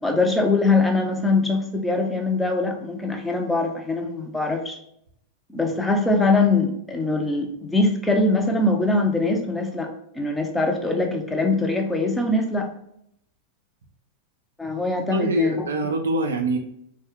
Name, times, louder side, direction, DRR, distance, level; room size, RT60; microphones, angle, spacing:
voice 1, 0.0-4.8 5.5-12.7 14.6-15.5, left 2 dB, 10° left, 2 dB, 0.5 m, -22 dB
voice 2, 14.9-16.6, right 2 dB, 65° right, 3 dB, 0.4 m, -24 dB
3.1 x 2.2 x 2.9 m, 0.72 s
figure-of-eight pair, 90°, 0 cm